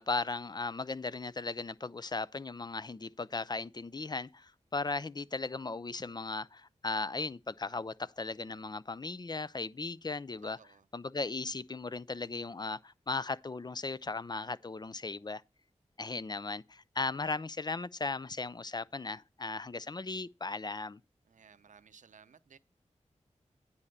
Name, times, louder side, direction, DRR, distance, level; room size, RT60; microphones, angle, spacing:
voice 1, 0.0-10.6 10.9-15.4 16.0-21.0, left 3 dB, 35° left, 0.5 m, -37 dB
voice 2, 10.4-10.9 21.3-22.6, right 6 dB, 85° right, 0.6 m, -58 dB
9.7 x 4.2 x 6.6 m
cardioid pair, 55°, 13 cm